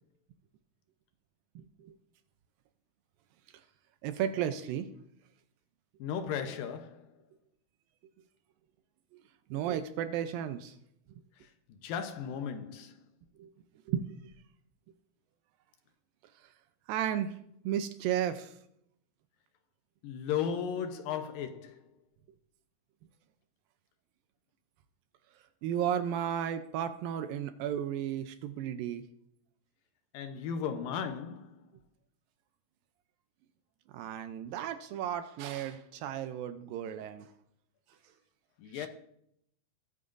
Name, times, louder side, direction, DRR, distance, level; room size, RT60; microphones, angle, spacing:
voice 1, 1.6-1.9 4.0-4.9 9.5-10.7 13.4-13.5 13.9-14.2 16.9-17.4 17.6-18.6 25.6-29.0 33.9-37.3 38.7-38.9, right 10 dB, 80° right, 2.2 m, -34 dB
voice 2, 6.0-7.1 11.4-11.5 11.8-13.0 20.0-21.8 30.1-31.7 38.6-38.9, left 7 dB, 75° left, 2.4 m, -36 dB
20.5 x 9.6 x 2.6 m
omnidirectional pair, 4.4 m